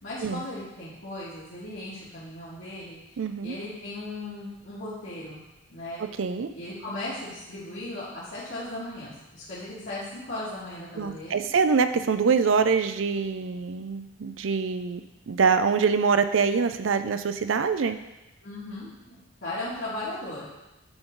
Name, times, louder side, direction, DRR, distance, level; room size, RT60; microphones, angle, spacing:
voice 1, 0.0-3.0 3.4-5.4 5.7-6.0 6.5-11.4 18.4-20.5, left 1 dB, 70° left, -13 dB, 2.4 m, -37 dB
voice 2, 3.2-3.6 6.2-6.5 11.0-15.0 15.3-18.0, right 5 dB, 75° right, 10 dB, 0.5 m, -24 dB
10.5 x 3.9 x 3.8 m, 0.97 s
head